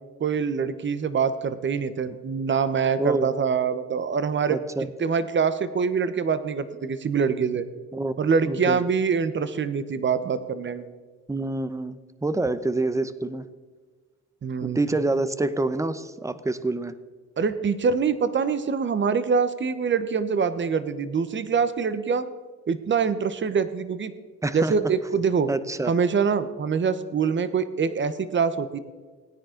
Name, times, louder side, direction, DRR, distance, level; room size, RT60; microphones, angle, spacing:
voice 1, 0.2-4.6 5.0-7.7 8.2-10.9 14.4-14.8 17.4-22.3 22.7-24.1 24.5-25.5 25.9-28.8, right 6 dB, 40° right, 13 dB, 1.0 m, -24 dB
voice 2, 4.5-4.9 7.9-8.2 8.5-8.8 11.3-13.5 14.6-16.9 24.4-24.9 25.5-25.9, right 2 dB, 10° right, 14 dB, 0.7 m, -27 dB
18.0 x 9.7 x 3.9 m, 1.4 s
cardioid pair, 90°, 30 cm